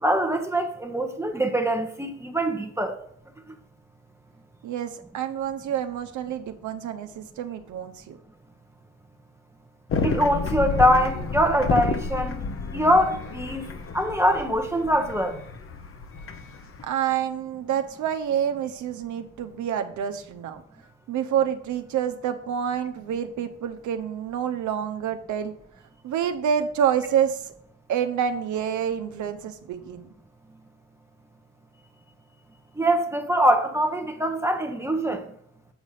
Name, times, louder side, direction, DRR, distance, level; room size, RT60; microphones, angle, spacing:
voice 1, 0.0-3.0 10.0-12.4 12.7-13.7 13.9-15.4 32.8-35.2, equal, 10° right, 0.8 m, -23 dB
voice 2, 4.6-8.2 16.8-20.6 21.1-25.5 26.0-27.5 27.9-30.1, right 9 dB, 75° right, 0.9 m, -28 dB
sound 1, 9.9-16.9, left 4 dB, 45° left, 0.9 m, -30 dB
8.1 x 4.1 x 4.9 m
cardioid pair, 90°, 30 cm